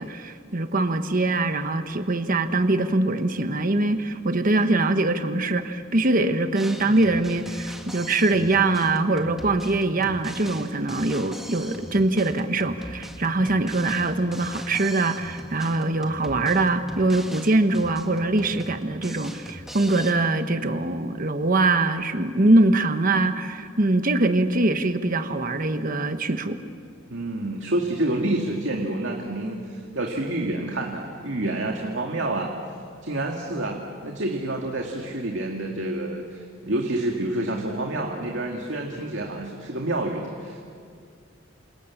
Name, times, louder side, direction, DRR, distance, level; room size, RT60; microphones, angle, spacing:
voice 1, 0.0-26.6, right 2 dB, 45° right, 8 dB, 1.2 m, -23 dB
Drum kit, 6.6-20.1, equal, ahead, 2.1 m, -40 dB
voice 2, 27.1-32.5 33.0-40.6, right 1 dB, 70° right, 1 dB, 2.3 m, -28 dB
28.5 x 28.0 x 7.3 m, 2.2 s
head